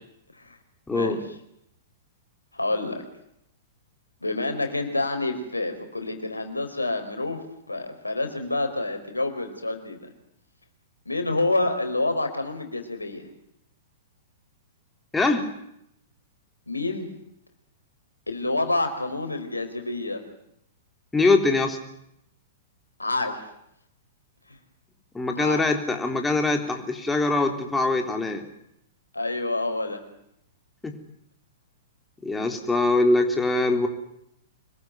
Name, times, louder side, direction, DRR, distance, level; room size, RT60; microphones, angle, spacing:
voice 1, 0.9-1.2 15.1-15.6 21.1-21.8 25.1-28.4 30.8-30.9 32.2-33.9, left 2 dB, 10° left, 4 dB, 3.8 m, -23 dB
voice 2, 2.5-3.0 4.2-10.1 11.0-13.3 16.7-17.1 18.3-20.2 23.0-23.4 25.3-25.6 29.1-30.0, left 2 dB, 85° left, 6 dB, 4.7 m, -28 dB
26.5 x 22.0 x 9.6 m, 0.77 s
figure-of-eight pair, 105°, 0 cm